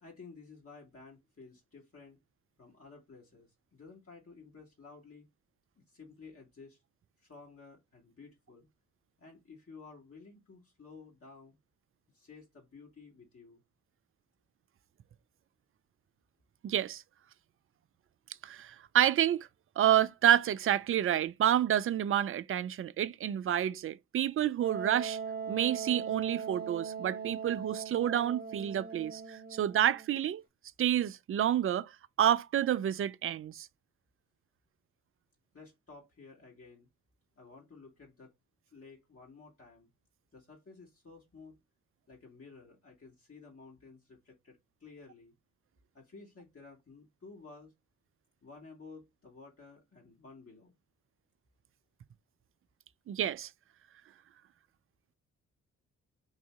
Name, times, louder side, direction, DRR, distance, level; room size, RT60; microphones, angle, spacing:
voice 1, 0.0-2.2 2.6-5.3 5.9-6.8 7.2-8.7 9.2-11.6 12.1-13.6 35.5-36.9 37.4-38.3 38.7-39.9 40.3-41.6 42.1-45.3 45.9-47.7 48.4-50.7, left 4 dB, 45° left, 1.8 m, -53 dB
voice 2, 16.6-17.0 18.4-19.5 19.8-25.2 25.5-30.4 30.8-31.9 32.2-33.7 53.1-53.5, right 11 dB, 40° right, 0.4 m, -29 dB
Wind instrument woodwind instrument, 24.6-30.1, right 6 dB, 25° right, 1.3 m, -40 dB
3.9 x 2.6 x 3.5 m
hypercardioid pair, 40°, 33 cm